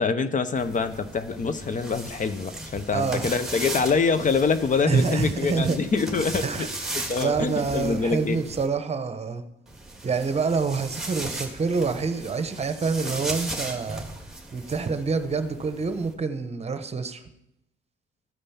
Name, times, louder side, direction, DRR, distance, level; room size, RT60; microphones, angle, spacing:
voice 1, 0.0-6.7 7.0-8.4, left 5 dB, 40° left, 12 dB, 0.7 m, -25 dB
sound 1, 0.5-8.7 9.7-16.1, right 2 dB, ahead, 2.0 m, -37 dB
voice 2, 2.9-3.3 4.9-5.8 6.4-9.4 10.0-14.0 14.5-17.2, right 5 dB, 30° right, 10 dB, 1.0 m, -27 dB
13.5 x 5.3 x 5.8 m, 0.85 s
cardioid pair, 90°, 20 cm